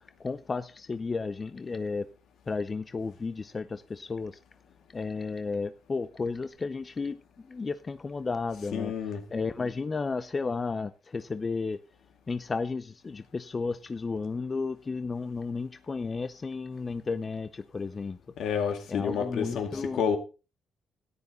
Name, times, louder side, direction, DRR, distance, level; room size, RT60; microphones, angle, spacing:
voice 1, 0.2-2.1 2.5-4.4 4.9-7.2 7.5-8.9 9.3-11.8 12.3-18.2 18.9-20.1, left 4 dB, 30° left, 0.6 m, -33 dB
voice 2, 8.7-9.2 18.4-20.2, left 7 dB, 75° left, 2.2 m, -29 dB
13.5 x 9.7 x 3.9 m
cardioid pair, 90°, 0 cm